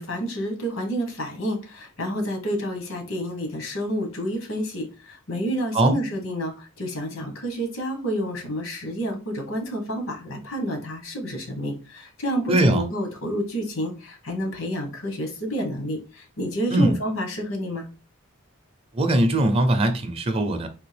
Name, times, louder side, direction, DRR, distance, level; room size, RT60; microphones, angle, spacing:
voice 1, 0.0-17.9, equal, 80° left, 1.0 m, -29 dB
voice 2, 12.5-12.8 16.7-16.9 18.9-20.7, right 1 dB, 25° right, 0.5 m, -20 dB
3.5 x 2.6 x 3.3 m
head